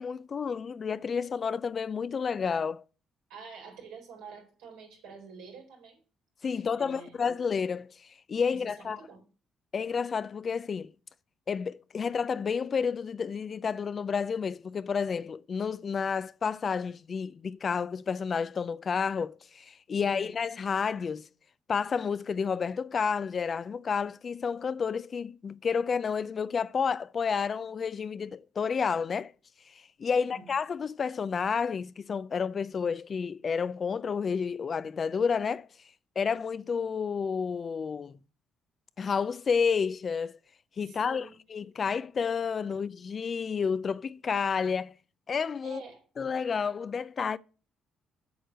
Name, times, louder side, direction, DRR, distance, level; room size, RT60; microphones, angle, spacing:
voice 1, 0.0-2.8 6.4-9.0 9.7-10.9 11.5-21.3 21.7-29.3 29.7-35.7 36.2-38.2 39.0-40.4 40.8-44.9 45.3-45.8 46.2-47.4, left 6 dB, 45° left, 0.5 m, -30 dB
voice 2, 3.3-6.0 6.5-7.2 8.5-9.2 20.0-20.3 30.1-30.5 40.8-41.4 45.6-46.0, right 5 dB, 80° right, 4.2 m, -47 dB
7.9 x 6.5 x 6.6 m
hypercardioid pair, 55°, 0 cm